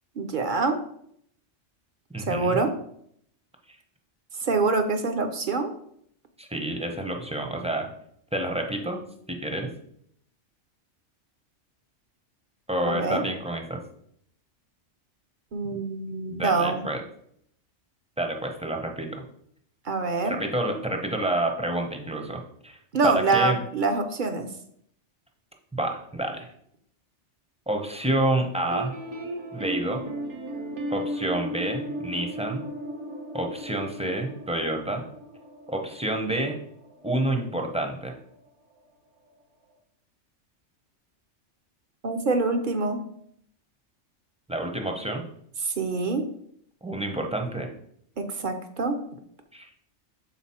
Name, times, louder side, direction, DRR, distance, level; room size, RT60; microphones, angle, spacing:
voice 1, 0.2-0.8 2.2-2.7 4.4-5.7 12.9-13.2 15.5-16.8 19.8-20.4 22.9-24.5 42.0-43.0 45.6-46.3 48.2-49.0, right 3 dB, 55° right, 6 dB, 0.7 m, -25 dB
voice 2, 2.1-2.6 6.4-7.9 8.3-9.0 9.3-9.7 12.7-13.8 16.3-17.0 18.2-19.2 20.2-22.8 23.0-23.6 25.7-26.5 27.7-28.9 29.5-30.0 30.9-32.6 33.3-35.0 35.7-36.6 37.0-38.1 44.5-45.2 46.8-47.7 49.5-49.7, right 1 dB, 5° right, 2 dB, 0.5 m, -28 dB
sound 1, 28.5-38.5 38.7-38.9 39.2-39.3 39.7-39.8, equal, 75° right, 1.3 m, -36 dB
5.9 x 4.0 x 4.2 m, 0.69 s
omnidirectional pair, 1.2 m